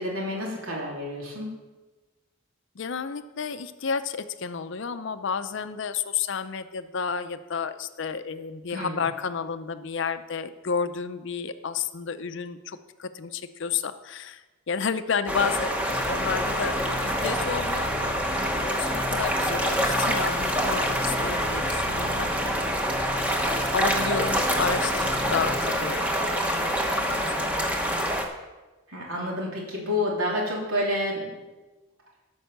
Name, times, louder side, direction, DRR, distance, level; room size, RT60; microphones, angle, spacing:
voice 1, 0.0-1.5 8.7-9.0 28.9-31.4, left 1 dB, 70° right, -3 dB, 3.1 m, -29 dB
voice 2, 2.8-15.7 16.1-18.2 18.6-22.3 23.3-27.7, left 6 dB, 55° left, 11 dB, 0.5 m, -31 dB
sound 1, 15.3-28.2, equal, 5° right, 0.9 m, -26 dB
sound 2, 15.9-25.6, left 1 dB, 35° right, 2.1 m, -37 dB
12.5 x 5.5 x 6.7 m, 1.2 s
head